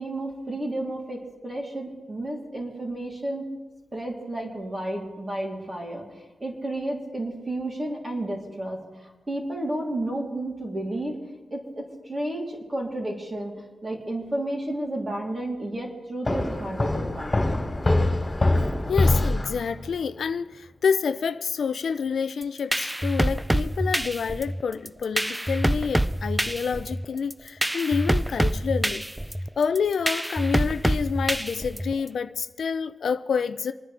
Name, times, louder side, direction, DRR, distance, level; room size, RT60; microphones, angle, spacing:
voice 1, 0.0-3.5 3.9-6.1 6.4-11.2 11.5-17.5, right 1 dB, 25° right, 3.3 m, -32 dB
sound 1, 16.3-19.9, left 2 dB, 20° left, 3.6 m, -24 dB
voice 2, 18.9-29.0 29.6-33.7, left 6 dB, 65° left, 0.4 m, -28 dB
sound 2, 22.4-32.1, right 1 dB, 5° right, 0.4 m, -26 dB
28.5 x 9.8 x 3.4 m
wide cardioid pair, 105°, 0 cm